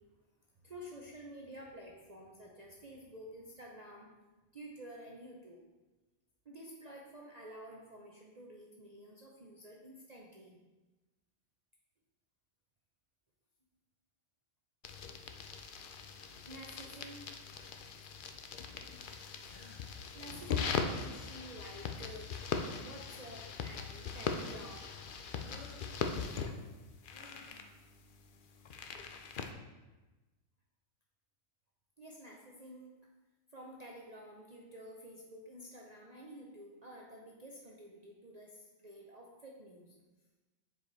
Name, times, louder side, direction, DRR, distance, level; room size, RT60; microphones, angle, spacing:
voice 1, 0.6-4.1 4.5-5.6 6.4-10.6 16.4-17.3 19.2-22.3 22.8-24.9 32.0-32.9 33.5-39.9, right 1 dB, 40° right, -3 dB, 0.7 m, -51 dB
sound 1, 14.8-29.5, left 5 dB, 60° left, 0.6 m, -40 dB
sound 2, 19.4-19.8 20.9-21.3 22.5-22.9 24.0-24.6 25.4-25.9 27.1-27.7, left 2 dB, 30° left, 1.1 m, -56 dB
7.0 x 5.0 x 4.0 m, 1.2 s
omnidirectional pair, 1.4 m